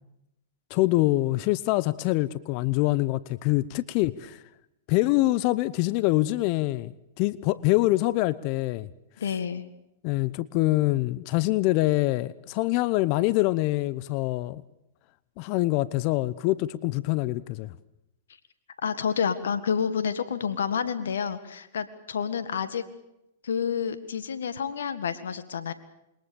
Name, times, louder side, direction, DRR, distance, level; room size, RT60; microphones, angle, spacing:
voice 1, 0.7-4.4 4.9-8.9 10.0-14.6 15.4-17.7, left 18 dB, 45° left, 0.8 m, -25 dB
voice 2, 9.2-9.7 18.8-22.8 23.4-25.7, left 7 dB, 80° left, 1.7 m, -29 dB
27.5 x 22.5 x 7.0 m
hypercardioid pair, 120°, 0 cm